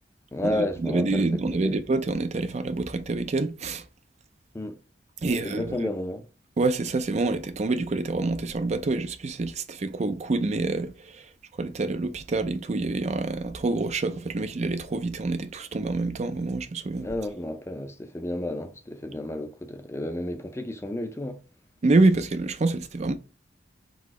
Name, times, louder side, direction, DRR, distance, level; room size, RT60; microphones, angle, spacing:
voice 1, 0.3-1.8 4.5-4.8 5.2-6.3 17.0-21.4, left 1 dB, 15° left, 0.5 m, -32 dB
voice 2, 0.8-3.8 5.2-5.7 6.6-11.2 11.6-17.1 21.8-23.1, right 3 dB, 40° right, 0.5 m, -26 dB
4.0 x 2.7 x 4.8 m
head